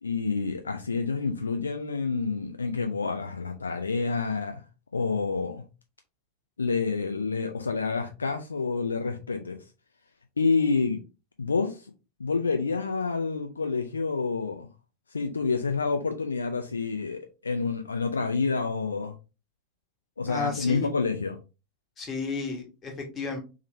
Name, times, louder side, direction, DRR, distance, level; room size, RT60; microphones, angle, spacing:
voice 1, 0.0-4.6 4.9-5.6 6.6-9.6 10.4-11.0 11.4-11.9 12.2-14.7 15.1-19.1 20.2-21.4, left 4 dB, 75° left, 0.5 m, -28 dB
voice 2, 20.3-20.9 22.0-23.4, left 4 dB, 25° left, 1.4 m, -32 dB
3.6 x 3.2 x 3.2 m
figure-of-eight pair, 90°, 0 cm